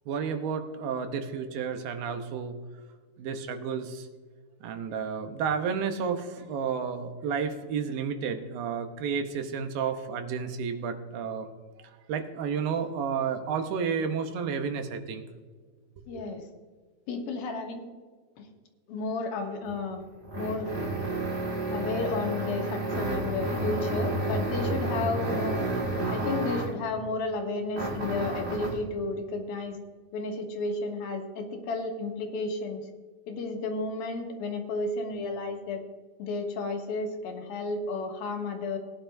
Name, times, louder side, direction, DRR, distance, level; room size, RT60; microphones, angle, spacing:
voice 1, 0.1-2.5 3.2-4.1 4.6-11.5 11.8-15.2 16.1-16.2, right 6 dB, 75° right, 7 dB, 2.6 m, -31 dB
voice 2, 16.1-16.4 17.1-17.8 18.4-18.5 18.9-20.0 20.3-20.7 21.7-25.6 26.1-29.8 30.1-32.9 33.3-35.8 36.2-38.8, left 3 dB, 80° left, 3 dB, 3.1 m, -32 dB
sound 1, 19.6-26.8 27.7-28.9, right 1 dB, 35° right, 1.1 m, -30 dB
19.0 x 10.0 x 2.6 m, 1.5 s
omnidirectional pair, 4.2 m